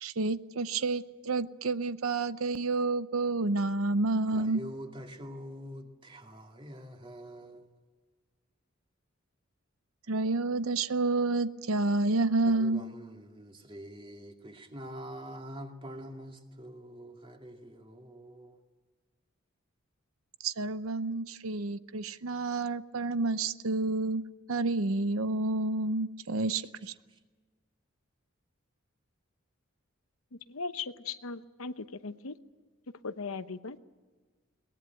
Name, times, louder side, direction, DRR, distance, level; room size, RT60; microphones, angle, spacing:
voice 1, 0.0-4.6 10.1-12.8 20.4-24.2 24.5-26.9, right 3 dB, 80° right, 14 dB, 0.8 m, -29 dB
voice 2, 4.3-7.7 12.4-18.6 26.8-27.2, equal, 25° right, 3 dB, 2.2 m, -45 dB
voice 3, 30.5-32.3 33.0-33.9, left 4 dB, 85° left, 11 dB, 0.9 m, -38 dB
22.5 x 19.5 x 9.1 m, 1.4 s
head